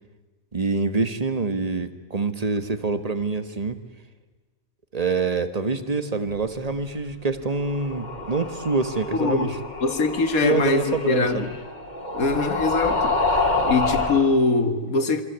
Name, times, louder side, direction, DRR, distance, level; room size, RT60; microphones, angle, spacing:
voice 1, 0.5-3.8 4.9-9.5 10.4-11.5, right 4 dB, 30° right, 10 dB, 1.5 m, -25 dB
sound 1, 7.6-14.3, left 3 dB, 30° left, 2.5 m, -27 dB
voice 2, 9.1-11.6 12.1-15.2, left 3 dB, 90° left, 8 dB, 2.2 m, -23 dB
27.0 x 24.5 x 8.2 m, 1.3 s
omnidirectional pair, 1.4 m